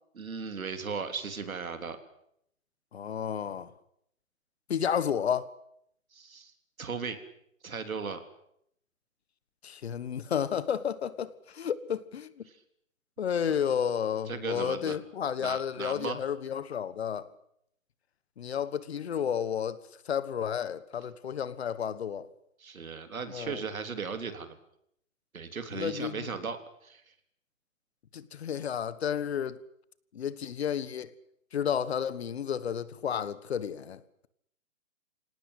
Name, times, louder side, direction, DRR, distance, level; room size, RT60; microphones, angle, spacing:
voice 1, 0.2-2.0 6.1-6.5 6.8-7.2 7.6-8.2 12.5-12.6 13.5-13.6 14.3-15.0 15.4-16.2 22.6-24.6 25.3-26.6 26.8-27.0, right 5 dB, 85° right, 3.5 m, -36 dB
voice 2, 2.9-3.7 4.7-5.5 9.6-12.3 13.2-17.3 18.4-19.8 20.0-22.3 23.3-23.6 25.7-26.2 28.1-29.6 30.1-31.1 31.5-34.3, left 8 dB, 50° left, 1.5 m, -31 dB
26.0 x 18.5 x 8.3 m
hypercardioid pair, 160°, 41 cm